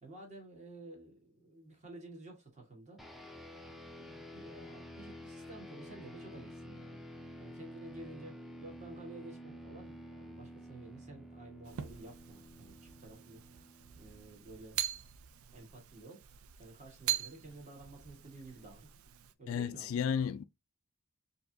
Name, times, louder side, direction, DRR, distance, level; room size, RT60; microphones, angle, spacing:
voice 1, 0.0-3.0 3.5-7.0 7.4-13.7 13.9-14.8 15.5-18.9 19.4-20.0, right 2 dB, 35° right, 1.7 m, -52 dB
sound 1, 3.0-14.7, equal, ahead, 0.5 m, -50 dB
sound 2, 11.6-19.3, right 11 dB, 80° right, 0.5 m, -42 dB
voice 2, 19.5-20.4, left 7 dB, 70° left, 0.4 m, -33 dB
4.5 x 2.8 x 2.7 m
head